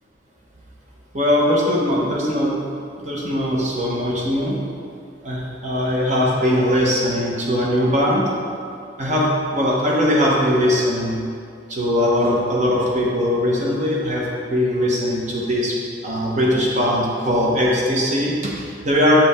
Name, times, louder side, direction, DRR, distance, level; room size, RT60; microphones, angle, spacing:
voice 1, 1.1-2.6 3.0-4.6 5.2-8.2 9.0-9.3 9.5-11.2 11.7-15.8 16.0-19.2, equal, 40° right, -4 dB, 1.2 m, -20 dB
7.2 x 5.0 x 3.7 m, 2.3 s
head